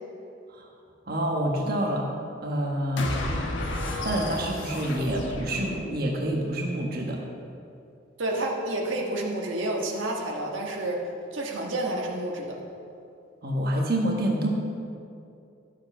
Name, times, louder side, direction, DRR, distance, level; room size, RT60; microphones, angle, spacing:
voice 1, 1.1-2.1 2.4-3.3 4.0-7.2 13.4-14.5, right 1 dB, 50° right, -1 dB, 1.3 m, -27 dB
sound 1, 3.0-6.3, left 1 dB, 75° left, 1.3 m, -32 dB
voice 2, 8.2-11.0 11.3-12.6, right 1 dB, 85° right, -1 dB, 1.5 m, -29 dB
12.0 x 7.5 x 5.5 m, 2.6 s
head